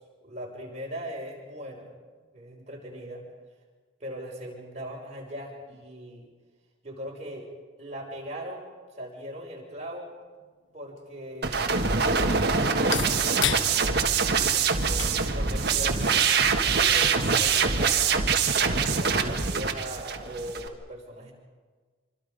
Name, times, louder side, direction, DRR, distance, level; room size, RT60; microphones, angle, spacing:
voice 1, 0.2-1.9 2.3-3.2 4.0-6.3 6.8-7.5 7.8-10.1 10.7-13.8 14.4-16.0 16.5-18.1 18.6-21.3, equal, 35° right, -2 dB, 6.0 m, -39 dB
sound 1, 10.4-18.4, left 8 dB, 70° left, 1.2 m, -38 dB
sound 2, 11.4-20.7, right 5 dB, 55° right, 1.6 m, -24 dB
26.5 x 25.5 x 5.3 m, 1.4 s
head